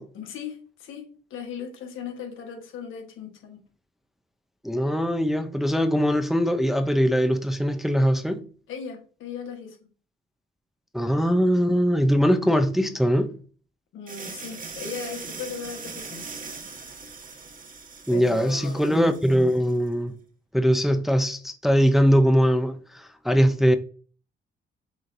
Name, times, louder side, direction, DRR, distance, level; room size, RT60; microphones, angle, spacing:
voice 1, 0.1-3.6 8.7-9.8 13.9-16.3 18.1-18.9, left 6 dB, 80° left, 1.2 m, -37 dB
voice 2, 4.6-8.5 10.9-13.4 18.1-20.1 20.5-23.8, equal, ahead, 0.5 m, -21 dB
sound 1, 14.1-19.8, right 4 dB, 45° right, 1.1 m, -40 dB
6.3 x 3.1 x 2.6 m
cardioid pair, 90°, 20 cm